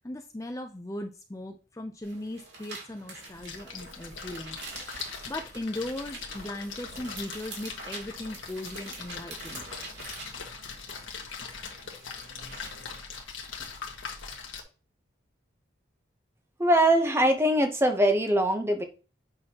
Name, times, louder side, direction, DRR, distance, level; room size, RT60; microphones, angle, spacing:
voice 1, 0.0-9.7, left 1 dB, 15° left, 4 dB, 0.5 m, -38 dB
sound 1, 2.0-13.0, right 3 dB, 60° right, 3.0 m, -46 dB
Splash splatter, 3.3-14.6, left 5 dB, 90° left, 1.5 m, -41 dB
voice 2, 16.6-18.8, right 1 dB, 15° right, 6 dB, 0.8 m, -22 dB
8.5 x 6.3 x 2.9 m, 0.34 s
head